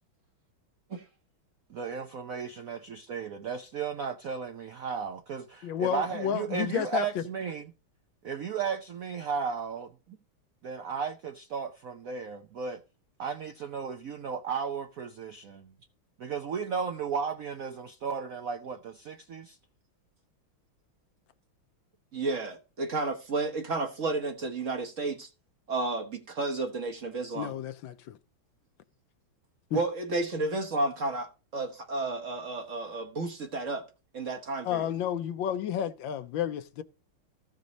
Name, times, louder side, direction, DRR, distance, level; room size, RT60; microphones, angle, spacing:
voice 1, 1.7-7.7 8.2-9.9 10.6-12.8 13.2-15.7 16.2-19.6, right 6 dB, 65° right, 0.8 m, -34 dB
voice 2, 5.6-7.2 27.3-28.2 29.7-29.8 34.6-36.8, left 9 dB, 75° left, 1.3 m, -31 dB
voice 3, 22.1-25.3 25.7-27.5 29.7-33.8 34.1-34.9, right 2 dB, 45° right, 1.2 m, -32 dB
14.5 x 5.3 x 3.9 m
omnidirectional pair, 2.3 m